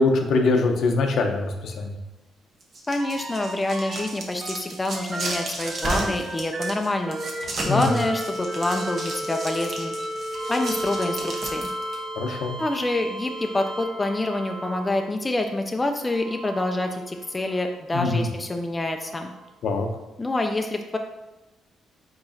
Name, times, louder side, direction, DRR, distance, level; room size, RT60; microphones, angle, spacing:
voice 1, 0.0-2.0 7.6-8.0 12.2-12.6 17.9-18.3 19.6-19.9, left 3 dB, 70° left, 4 dB, 0.6 m, -23 dB
sound 1, 2.6-12.0, right 2 dB, 50° right, 1.0 m, -34 dB
voice 2, 2.9-7.2 7.6-9.9 10.5-11.7 12.6-19.3 20.2-21.0, left 2 dB, 20° left, 4 dB, 0.4 m, -27 dB
sound 2, 3.0-4.1 4.4-15.2 16.0-17.6 19.3-19.4, right 1 dB, 35° right, 0.7 m, -33 dB
4.7 x 3.9 x 2.7 m, 1.0 s
cardioid pair, 90°, 0 cm